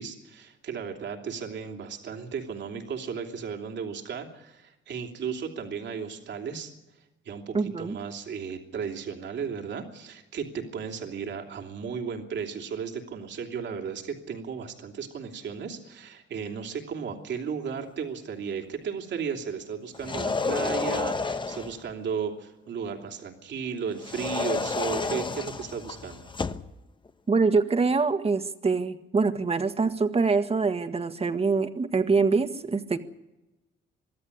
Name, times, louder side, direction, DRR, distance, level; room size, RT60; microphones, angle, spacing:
voice 1, 0.0-6.7 7.2-26.3, right 6 dB, 65° right, 4 dB, 3.1 m, -35 dB
voice 2, 7.5-8.0 27.3-33.0, right 4 dB, 30° right, 9 dB, 1.7 m, -24 dB
sound 1, 19.9-21.8 24.0-26.7, left 4 dB, 25° left, 1.1 m, -30 dB
24.0 x 13.5 x 9.9 m, 1.0 s
cardioid pair, 90°, 20 cm